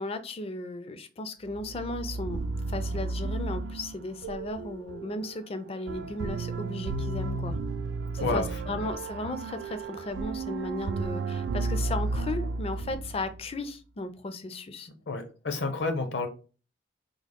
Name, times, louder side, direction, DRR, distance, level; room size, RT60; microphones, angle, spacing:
voice 1, 0.0-2.4 2.7-7.6 8.1-14.9, left 2 dB, 35° left, 0.4 m, -35 dB
sound 1, 1.5-13.5, right 3 dB, 80° right, 0.3 m, -33 dB
voice 2, 15.1-16.3, left 3 dB, 70° left, 0.7 m, -29 dB
3.6 x 2.1 x 3.5 m
head